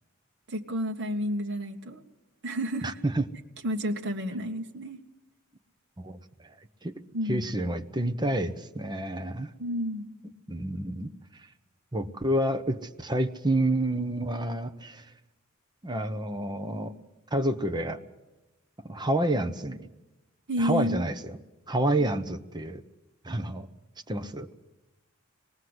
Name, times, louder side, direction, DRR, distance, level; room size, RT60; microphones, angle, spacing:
voice 1, 0.5-2.0 2.4-3.0 3.6-5.0 7.1-7.5 9.6-10.1 20.5-21.0, equal, 55° right, 3 dB, 1.4 m, -30 dB
voice 2, 2.8-3.3 6.0-6.5 6.8-6.9 7.3-9.5 10.5-11.1 11.9-15.1 15.8-16.9 17.3-18.0 18.8-19.9 20.6-21.4 21.7-22.8 23.2-23.7 24.1-24.5, right 1 dB, 20° right, 8 dB, 1.0 m, -29 dB
25.0 x 19.5 x 8.0 m, 1.1 s
head